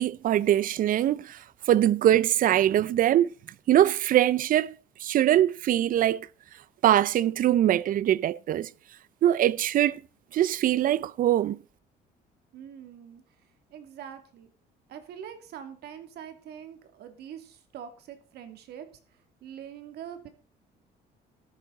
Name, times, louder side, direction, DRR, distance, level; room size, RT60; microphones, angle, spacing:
voice 1, 0.0-1.4 1.7-3.3 3.7-4.7 5.0-6.3 6.8-8.7 9.2-10.0 10.3-11.6, right 12 dB, 55° right, 0.6 m, -22 dB
voice 2, 12.5-13.2 13.7-14.5 14.9-18.9 19.4-20.3, right 9 dB, 75° right, 2.5 m, -43 dB
13.5 x 11.0 x 4.0 m
cardioid pair, 110°, 17 cm